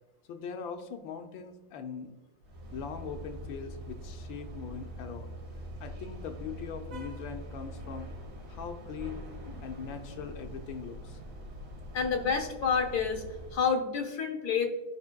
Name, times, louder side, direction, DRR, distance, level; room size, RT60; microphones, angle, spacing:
voice 1, 0.3-2.2 2.7-5.3 5.8-8.1 8.5-9.3 9.6-11.2, left 6 dB, 75° left, 6 dB, 1.5 m, -41 dB
sound 1, 2.4-13.6, equal, 65° right, 1.8 m, -43 dB
voice 2, 11.9-13.2 13.5-14.6, left 6 dB, 60° left, 3 dB, 1.3 m, -28 dB
13.0 x 5.4 x 2.2 m, 1.1 s
omnidirectional pair, 2.2 m